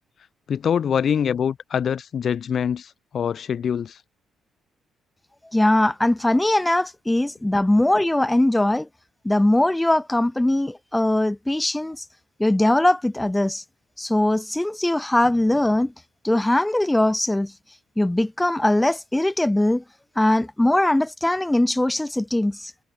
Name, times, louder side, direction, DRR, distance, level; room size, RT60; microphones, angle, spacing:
voice 1, 0.5-4.0, left 8 dB, 55° left, 0.5 m, -24 dB
voice 2, 5.5-8.9 9.2-12.0 12.4-13.6 14.0-15.9 16.2-17.5 18.0-19.8 20.2-22.7, left 1 dB, 10° left, 0.6 m, -21 dB
cardioid pair, 90°, 0 cm